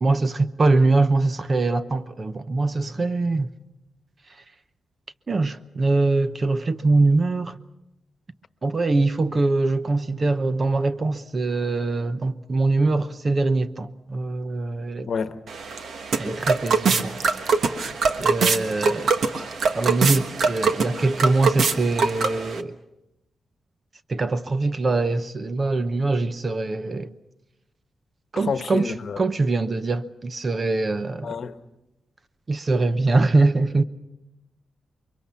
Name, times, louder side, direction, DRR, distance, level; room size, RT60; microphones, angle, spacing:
voice 1, 0.0-3.5 5.3-7.6 8.6-15.1 16.2-17.2 18.2-19.1 19.7-22.8 24.1-27.1 28.3-31.3 32.5-33.8, right 3 dB, 30° right, 0.8 m, -23 dB
voice 2, 15.1-15.4 28.4-29.2 31.2-31.5, left 6 dB, 55° left, 1.2 m, -29 dB
sound 1, 15.5-22.6, right 4 dB, 60° right, 1.3 m, -23 dB
29.0 x 23.5 x 5.7 m
wide cardioid pair, 145°, 0 cm